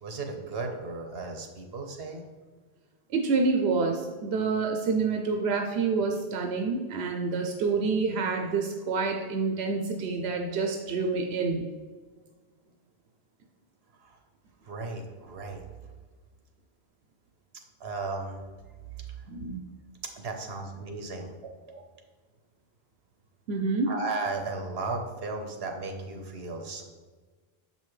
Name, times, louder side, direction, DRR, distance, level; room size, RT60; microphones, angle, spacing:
voice 1, 0.0-2.2 14.0-14.2 14.6-15.7 17.8-18.4 19.1-19.2 20.2-21.3 23.9-26.8, right 3 dB, 70° right, 4 dB, 1.2 m, -35 dB
voice 2, 3.1-11.6 19.3-19.6 23.5-23.9, right 4 dB, 90° right, 3 dB, 0.9 m, -27 dB
7.0 x 5.4 x 3.2 m, 1.4 s
omnidirectional pair, 1.1 m